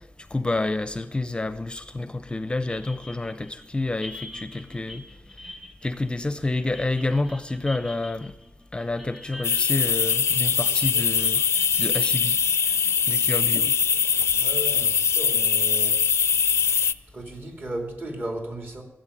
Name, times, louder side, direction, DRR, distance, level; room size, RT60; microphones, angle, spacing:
voice 1, 0.3-5.0 5.8-8.3 8.7-11.4 11.8-12.4 13.1-13.7, left 2 dB, 20° left, 0.6 m, -28 dB
sound 1, 2.7-14.4, left 2 dB, 10° right, 1.4 m, -44 dB
sound 2, 9.4-16.9, left 6 dB, 80° left, 0.4 m, -22 dB
voice 2, 14.3-16.0 17.1-18.8, right 1 dB, 45° right, 2.8 m, -35 dB
16.5 x 7.8 x 9.9 m
wide cardioid pair, 135°, 5 cm